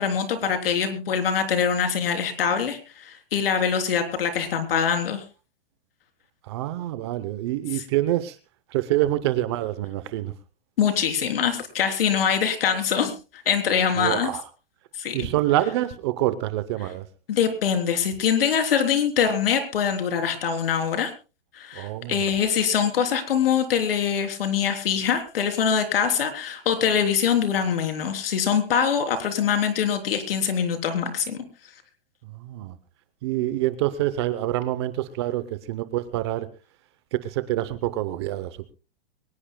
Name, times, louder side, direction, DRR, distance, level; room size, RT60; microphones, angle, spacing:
voice 1, 0.0-5.2 7.7-7.8 10.8-13.1 13.5-14.3 15.0-15.3 17.3-21.1 21.6-31.4, left 7 dB, 65° left, 7 dB, 3.5 m, -23 dB
voice 2, 6.5-8.4 8.7-10.3 14.0-14.4 15.1-17.0 21.8-22.2 32.4-32.8 33.2-36.5 37.1-38.7, right 14 dB, 25° right, 14 dB, 0.7 m, -26 dB
22.5 x 19.5 x 2.2 m, 0.32 s
hypercardioid pair, 170°, 31 cm